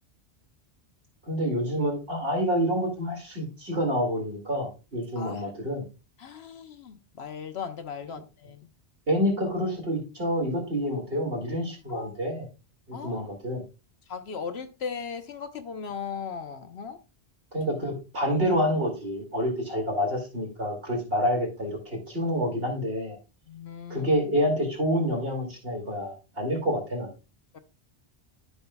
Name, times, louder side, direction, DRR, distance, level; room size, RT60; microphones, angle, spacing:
voice 1, 1.3-5.8 8.1-8.2 9.1-12.5 12.9-13.6 17.5-23.2 23.9-27.1, equal, 60° right, -1 dB, 2.7 m, -28 dB
voice 2, 6.2-8.7 11.9-12.1 12.9-13.2 14.1-17.0 23.5-24.1 27.5-27.6, left 6 dB, 75° left, 8 dB, 1.0 m, -37 dB
12.5 x 5.5 x 2.2 m, 0.30 s
omnidirectional pair, 1.1 m